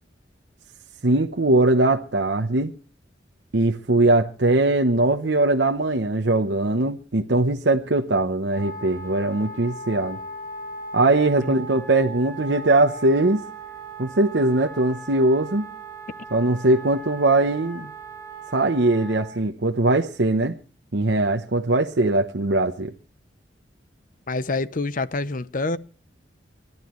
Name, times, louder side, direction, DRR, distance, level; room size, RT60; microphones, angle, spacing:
voice 1, 1.0-2.7 3.5-10.2 10.9-13.4 14.0-15.7 16.3-17.9 18.5-20.5 20.9-22.9, right 2 dB, 70° right, 0.9 m, -21 dB
Wind instrument woodwind instrument, 8.5-19.3, right 2 dB, 15° left, 6.6 m, -38 dB
voice 2, 24.3-25.8, left 3 dB, 50° left, 0.7 m, -26 dB
29.0 x 12.0 x 3.1 m
head